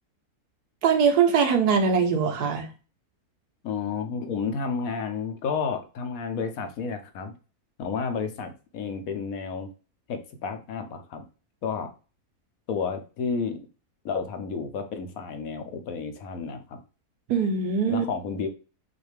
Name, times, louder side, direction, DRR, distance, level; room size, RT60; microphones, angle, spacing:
voice 1, 0.8-2.7 17.3-18.0, right 6 dB, 90° right, 5 dB, 1.5 m, -22 dB
voice 2, 3.6-7.3 7.8-9.7 10.1-11.2 11.6-11.9 12.7-13.6 14.0-16.8 17.9-18.5, left 5 dB, 70° left, 7 dB, 1.1 m, -31 dB
6.2 x 2.6 x 3.3 m, 0.35 s
omnidirectional pair, 1.6 m